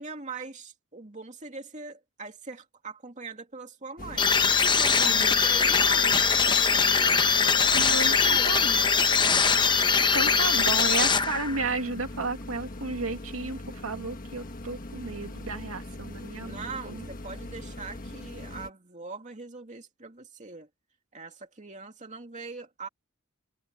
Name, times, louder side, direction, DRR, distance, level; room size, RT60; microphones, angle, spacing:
voice 1, 0.0-4.3 4.6-6.9 7.4-7.9 8.2-8.7 16.4-20.7 21.1-22.9, right 4 dB, 35° right, 2.5 m, -42 dB
sound 1, 4.0-18.7, left 1 dB, 40° left, 1.4 m, -41 dB
sound 2, 4.2-11.7, left 5 dB, 20° left, 0.8 m, -22 dB
voice 2, 5.0-5.4 7.7-8.8 9.8-17.0, right 3 dB, 85° right, 2.1 m, -33 dB
head